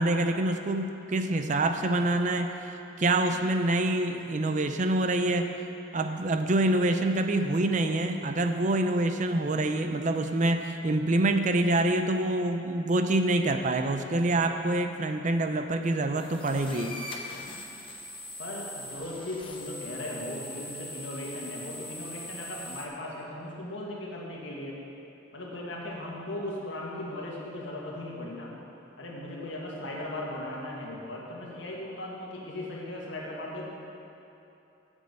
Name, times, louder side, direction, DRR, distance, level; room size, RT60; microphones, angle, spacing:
voice 1, 0.0-2.5 3.0-5.5 5.9-17.0, right 2 dB, 40° right, 7 dB, 0.5 m, -26 dB
sound 1, 16.2-22.9, left 1 dB, 25° left, 0.8 m, -41 dB
voice 2, 18.4-24.8 25.3-28.5 29.0-33.6, left 1 dB, 70° left, -3 dB, 1.9 m, -37 dB
8.4 x 6.3 x 7.8 m, 2.8 s
head